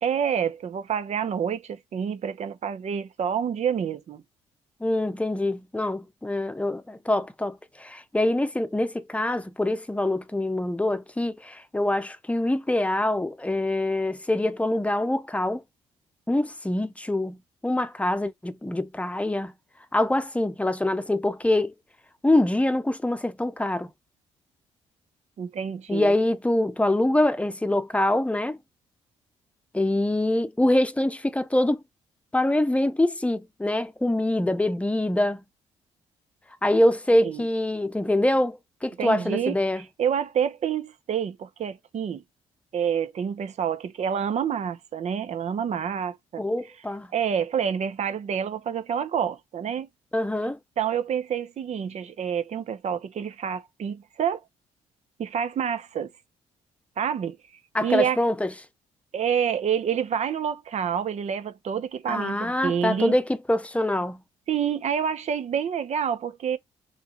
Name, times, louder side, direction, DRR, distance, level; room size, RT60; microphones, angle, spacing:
voice 1, 0.0-4.2 25.4-26.1 37.2-37.4 39.0-42.2 42.7-46.4 47.1-49.9 50.4-54.4 55.2-56.1 57.0-57.4 57.8-58.2 59.1-63.2 64.5-66.6, right 8 dB, 55° right, 0.9 m, -28 dB
voice 2, 4.8-15.6 16.3-17.4 17.6-19.5 19.9-21.7 22.2-23.9 25.9-28.6 29.7-31.8 32.3-35.4 36.6-39.8 46.4-47.1 50.1-50.6 57.7-58.5 62.1-64.2, left 1 dB, 10° left, 0.8 m, -24 dB
4.5 x 3.3 x 3.0 m
supercardioid pair, 60°, 14 cm